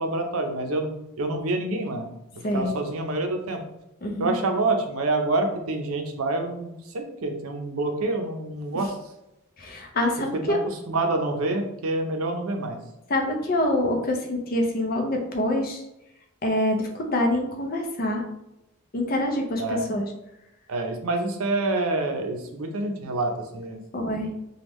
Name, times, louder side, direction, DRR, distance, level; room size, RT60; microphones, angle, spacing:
voice 1, 0.0-2.1 2.3-3.6 4.2-9.0 10.5-10.6 10.9-12.8 19.6-19.9 20.7-23.8, right 2 dB, 75° right, 4 dB, 0.5 m, -27 dB
voice 2, 4.0-4.3 9.6-10.6 13.1-15.8 16.4-18.2 18.9-20.1 23.9-24.3, left 1 dB, 40° left, 2 dB, 0.6 m, -25 dB
3.5 x 2.2 x 3.0 m, 0.87 s
head